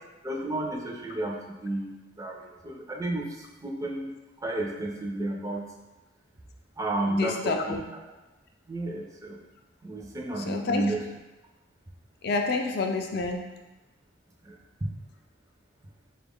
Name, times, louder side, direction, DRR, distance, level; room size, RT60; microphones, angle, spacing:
voice 1, 0.2-1.9 2.2-3.3 3.6-4.1 4.4-5.6 6.8-7.8 8.7-9.4 9.8-11.0 12.3-12.4 14.4-14.6 14.8-14.9, right 1 dB, 15° right, -1 dB, 0.4 m, -31 dB
voice 2, 7.1-7.8 10.5-10.9 12.2-13.5, left 3 dB, 55° left, 3 dB, 0.4 m, -28 dB
4.3 x 2.3 x 3.5 m, 1.1 s
head